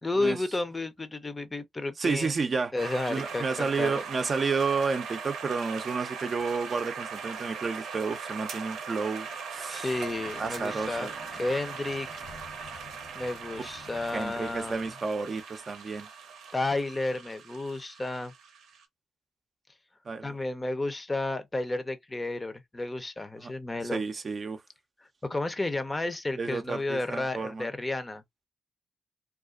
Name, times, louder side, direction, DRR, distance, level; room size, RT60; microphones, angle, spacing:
voice 1, 0.0-2.3 2.7-4.0 9.7-12.2 13.1-14.9 16.5-18.3 20.2-24.0 25.2-28.2, left 2 dB, 25° left, 0.6 m, -32 dB
voice 2, 2.0-2.7 3.1-9.9 10.4-11.1 14.1-16.1 20.1-20.4 23.4-23.5 23.9-24.6 26.4-27.7, right 4 dB, 45° right, 0.5 m, -31 dB
sound 1, 2.8-18.8, right 6 dB, 85° right, 0.6 m, -40 dB
sound 2, 9.9-14.9, left 4 dB, 75° left, 1.1 m, -52 dB
2.4 x 2.3 x 2.3 m
cardioid pair, 65°, 0 cm